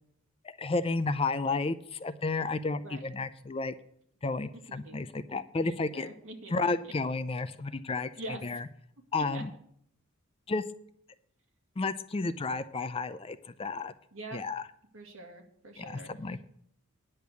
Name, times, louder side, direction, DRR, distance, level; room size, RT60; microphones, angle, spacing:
voice 1, 0.4-3.7 4.2-6.1 6.5-8.1 8.4-8.7 9.1-9.5 10.5-10.6 11.8-13.9 14.3-14.6 15.8-16.4, left 3 dB, 25° left, 12 dB, 0.4 m, -32 dB
voice 2, 5.6-6.5 8.2-8.4 9.1-9.4 14.1-14.4 14.9-16.1, right 2 dB, 65° right, 3 dB, 2.1 m, -44 dB
10.0 x 6.6 x 8.1 m, 0.68 s
head